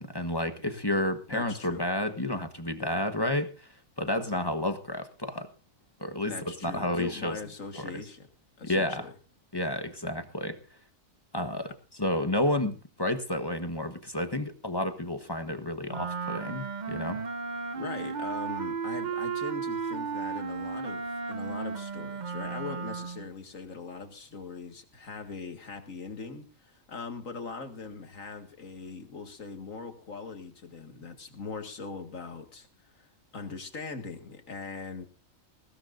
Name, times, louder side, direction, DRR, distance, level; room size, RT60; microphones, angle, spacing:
voice 1, 0.0-3.7 4.0-5.5 6.0-7.4 7.7-7.9 8.6-9.1 9.5-10.6 11.3-11.7 12.0-17.2, left 1 dB, 20° left, 8 dB, 1.2 m, -31 dB
voice 2, 1.3-1.8 6.3-8.3 8.6-9.1 17.7-35.1, left 4 dB, 75° left, 6 dB, 2.4 m, -41 dB
Wind instrument woodwind instrument, 15.9-23.3, right 5 dB, 40° right, 0.8 m, -34 dB
21.0 x 16.5 x 2.6 m, 0.33 s
omnidirectional pair, 1.4 m